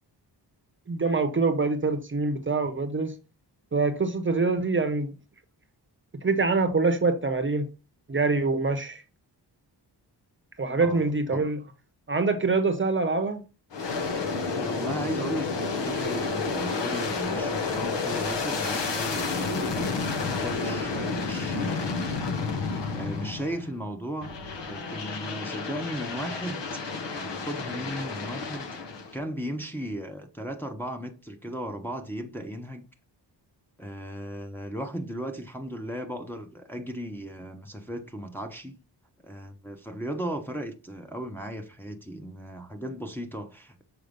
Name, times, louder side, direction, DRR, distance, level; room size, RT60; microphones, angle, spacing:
voice 1, 0.9-3.1 3.7-5.1 6.2-7.7 8.1-9.0 10.6-11.6 12.1-13.4, right 3 dB, 30° right, 0.8 m, -25 dB
voice 2, 10.8-11.5 14.5-22.0 22.9-24.3 24.7-26.8 27.1-28.7 29.1-32.8 33.8-38.8 39.2-43.8, equal, 5° left, 0.8 m, -36 dB
Aircraft, 13.7-23.7 24.2-29.2, left 4 dB, 90° left, 1.2 m, -30 dB
6.6 x 4.9 x 5.1 m
wide cardioid pair, 155°, 42 cm